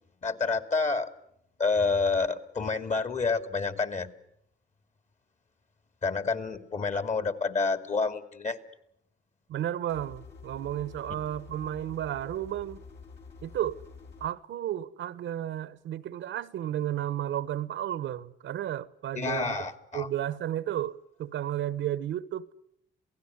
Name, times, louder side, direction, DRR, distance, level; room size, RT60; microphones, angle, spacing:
voice 1, 0.2-1.1 1.6-4.1 6.0-8.6 19.1-20.1, left 4 dB, 35° left, 2.5 m, -28 dB
voice 2, 9.5-12.8 13.4-13.8 14.2-19.6 19.9-22.5, right 11 dB, 75° right, 1.0 m, -33 dB
sound 1, 9.9-14.3, left 5 dB, 65° left, 5.3 m, -48 dB
28.0 x 17.5 x 9.7 m
cardioid pair, 90°, 20 cm